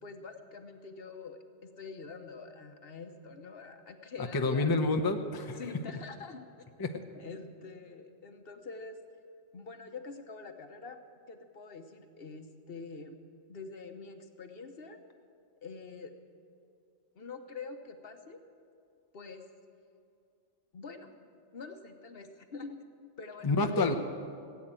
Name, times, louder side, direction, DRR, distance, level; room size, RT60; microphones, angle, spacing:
voice 1, 0.0-4.9 5.6-6.4 7.1-9.0 9.5-11.0 11.3-13.2 13.5-15.0 15.6-16.1 17.1-18.4 19.1-19.5 20.7-21.1 21.5-22.8 23.2-24.0, left 4 dB, 55° left, 6 dB, 1.2 m, -45 dB
voice 2, 4.2-5.6 6.8-6.9 23.4-24.0, left 3 dB, 25° left, 5 dB, 0.7 m, -28 dB
17.5 x 8.5 x 8.9 m, 2.4 s
omnidirectional pair, 1.2 m